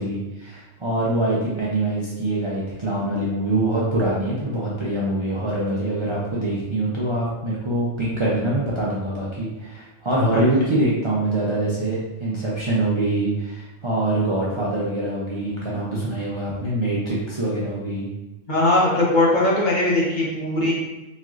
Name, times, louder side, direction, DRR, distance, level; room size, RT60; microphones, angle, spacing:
voice 1, 0.0-18.1, right 1 dB, 35° right, -7 dB, 0.5 m, -24 dB
voice 2, 18.5-20.7, left 1 dB, 40° left, -6 dB, 1.0 m, -20 dB
4.1 x 3.0 x 2.4 m, 1.1 s
omnidirectional pair, 1.3 m